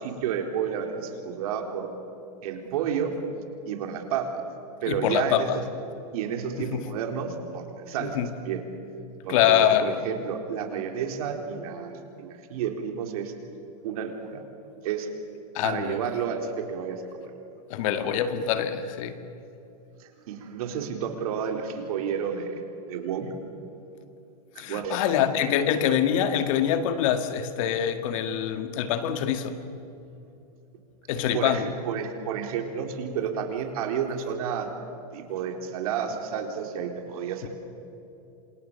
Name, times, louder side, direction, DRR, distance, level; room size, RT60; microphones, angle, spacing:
voice 1, 0.0-1.9 2.4-3.2 3.7-4.3 4.8-5.6 6.1-8.2 8.4-8.6 9.2-13.3 13.8-14.4 14.8-15.1 15.6-17.0 20.0-22.6 22.9-23.3 24.6-25.0 31.3-34.7 35.1-37.5, right 7 dB, 65° right, 4 dB, 4.0 m, -31 dB
voice 2, 4.9-5.6 6.7-6.9 8.0-8.3 9.3-10.1 15.5-16.0 17.7-19.2 24.6-29.6 31.1-31.7, left 9 dB, 55° left, 9 dB, 2.0 m, -25 dB
28.5 x 27.5 x 6.9 m, 2.8 s
supercardioid pair, 140°, 20 cm